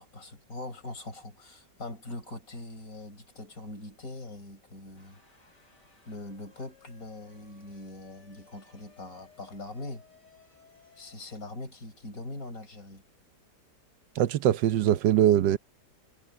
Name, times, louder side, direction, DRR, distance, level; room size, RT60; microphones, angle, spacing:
voice 1, 0.0-5.2 6.1-10.1 11.0-13.0, left 2 dB, 50° left, 4.8 m, -42 dB
Jet-Fighter FX, 5.0-11.2, left 6 dB, 75° left, 8.9 m, -60 dB
voice 2, 14.2-15.6, right 11 dB, 80° right, 1.5 m, -22 dB
omnidirectional pair, 1.9 m